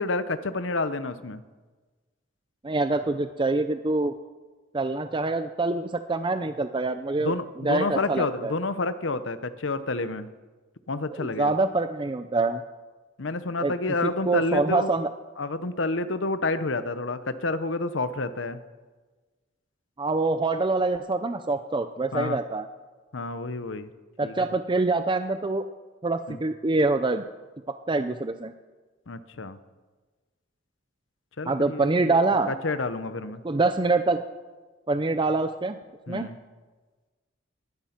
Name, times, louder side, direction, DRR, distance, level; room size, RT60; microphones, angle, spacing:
voice 1, 0.0-1.4 7.2-10.3 10.9-11.5 13.2-14.9 15.4-18.6 22.1-22.4 23.1-23.9 24.2-24.4 26.3-26.4 29.1-29.6 31.4-32.2 32.5-33.4 36.1-36.4, left 3 dB, 70° left, 12 dB, 0.9 m, -29 dB
voice 2, 2.6-4.1 4.7-8.5 11.1-12.6 13.6-13.7 14.0-15.1 20.0-22.7 24.2-25.6 26.0-27.2 27.7-28.5 31.5-32.5 33.4-34.2 34.9-35.8 36.1-36.3, right 3 dB, 25° right, 9 dB, 0.5 m, -25 dB
19.5 x 12.0 x 5.9 m, 1.3 s
head